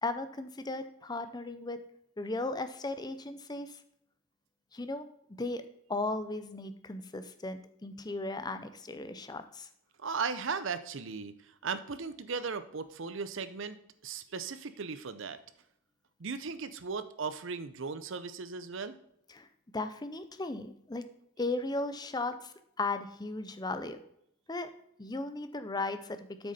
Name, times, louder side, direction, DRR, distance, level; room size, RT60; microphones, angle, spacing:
voice 1, 0.0-1.8 2.2-3.8 4.7-5.6 5.9-9.7 19.3-19.5 19.7-21.1 21.4-24.0 24.5-24.7 25.0-26.5, left 2 dB, 20° left, 10 dB, 0.6 m, -36 dB
voice 2, 10.0-13.8 14.0-15.4 16.2-19.0, right 5 dB, 60° right, 13 dB, 0.7 m, -37 dB
8.0 x 6.4 x 4.2 m, 0.73 s
head